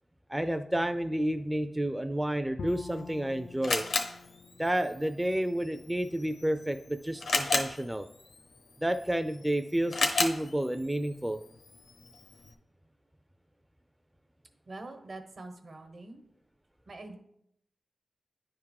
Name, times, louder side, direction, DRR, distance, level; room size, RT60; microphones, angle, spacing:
voice 1, 0.3-3.8 4.6-8.1 8.8-11.4, right 1 dB, 10° right, 8 dB, 0.4 m, -30 dB
Bowed string instrument, 2.6-5.7, left 5 dB, 65° left, 0.4 m, -46 dB
Camera, 2.7-12.5, left 3 dB, 85° left, 0.8 m, -35 dB
voice 2, 14.6-16.2 16.9-17.2, right 2 dB, 60° right, 6 dB, 1.2 m, -44 dB
9.8 x 3.7 x 4.7 m, 0.78 s
cardioid pair, 55°, 0 cm